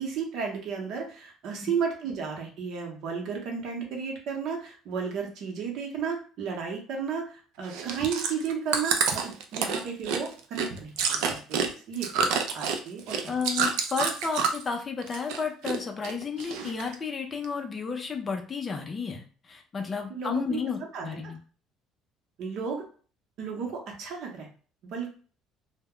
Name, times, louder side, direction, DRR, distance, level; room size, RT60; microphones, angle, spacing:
voice 1, 0.0-12.3 12.5-13.3 20.1-20.6 20.9-21.2 22.4-22.8 23.4-24.5 24.9-25.1, right 6 dB, 60° right, 1 dB, 0.8 m, -33 dB
Chewing mastication, 7.7-14.7 15.0-15.8 16.0-17.0 17.4-17.5, right 6 dB, 85° right, 0.4 m, -28 dB
voice 2, 13.3-21.4, left 5 dB, 25° left, 4 dB, 0.4 m, -32 dB
2.2 x 2.0 x 3.5 m, 0.40 s
cardioid pair, 130°, 0 cm